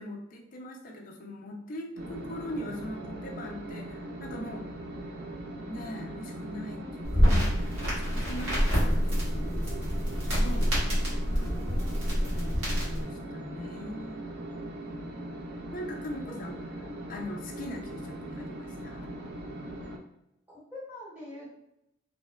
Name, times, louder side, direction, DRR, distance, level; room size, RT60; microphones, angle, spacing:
voice 1, 0.0-4.7 5.7-11.8 12.2-14.2 14.8-15.3 15.7-16.6 17.1-19.1, equal, 40° left, 1 dB, 0.4 m, -41 dB
sound 1, 2.0-20.0, right 1 dB, 50° right, 0.4 m, -40 dB
voice 2, 6.7-7.1 11.2-12.0 14.5-15.1 16.3-16.4 20.5-21.5, left 1 dB, 5° right, -8 dB, 0.9 m, -47 dB
sound 2, 7.0-13.0, equal, 90° right, 1.2 m, -27 dB
3.1 x 2.1 x 2.2 m, 0.82 s
head